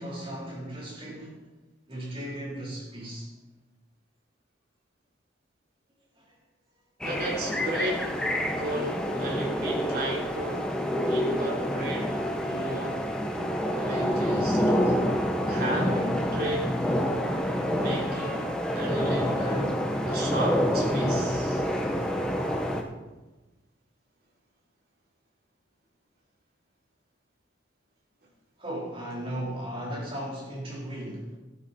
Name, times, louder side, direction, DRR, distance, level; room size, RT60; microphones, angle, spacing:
voice 1, 0.0-1.4 1.9-3.3 6.2-6.3 14.9-15.0 28.6-31.4, right 1 dB, 30° right, -5 dB, 4.2 m, -36 dB
sound 1, 7.0-22.8, equal, 5° left, 1.1 m, -27 dB
voice 2, 7.0-8.2 8.5-10.7 11.1-13.0 13.8-15.1 15.5-16.7 17.7-19.8 20.0-21.6, right 1 dB, 55° right, -2 dB, 3.5 m, -34 dB
14.0 x 12.0 x 4.3 m, 1.1 s
head